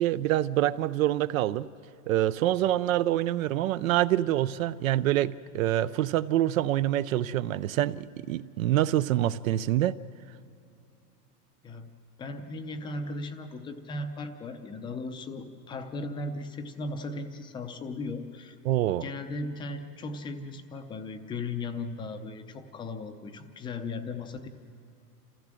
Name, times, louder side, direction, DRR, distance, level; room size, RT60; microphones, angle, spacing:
voice 1, 0.0-1.7 2.1-10.0 18.7-19.0, right 13 dB, 55° right, 16 dB, 0.5 m, -26 dB
voice 2, 12.2-18.6 19.0-24.5, left 2 dB, 10° left, 7 dB, 0.5 m, -37 dB
27.0 x 15.5 x 7.5 m, 2.6 s
supercardioid pair, 145°, 48 cm